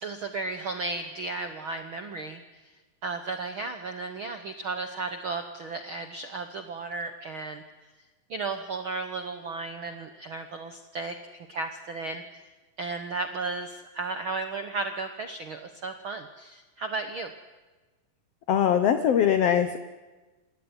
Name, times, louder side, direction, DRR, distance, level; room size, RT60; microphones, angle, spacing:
voice 1, 0.0-2.4 3.0-7.6 8.3-12.4 12.8-17.3, right 3 dB, 70° right, 7 dB, 1.2 m, -34 dB
voice 2, 18.5-19.8, left 9 dB, 65° left, 9 dB, 1.6 m, -22 dB
27.0 x 16.0 x 9.8 m, 1.2 s
omnidirectional pair, 4.0 m